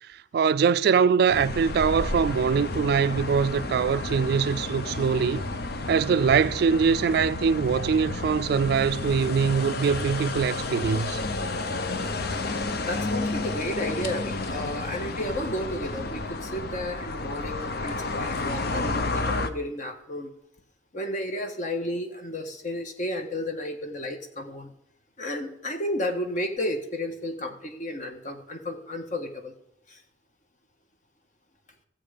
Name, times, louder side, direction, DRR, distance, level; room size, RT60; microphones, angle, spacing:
voice 1, 0.3-5.5 5.9-11.2, right 6 dB, 60° right, 0.3 m, -23 dB
sound 1, 1.3-19.5, left 2 dB, 60° left, 0.8 m, -31 dB
voice 2, 12.8-20.3 20.9-24.7 25.2-29.5 29.9-30.0, left 1 dB, 45° left, 1.5 m, -32 dB
14.0 x 7.8 x 5.1 m
head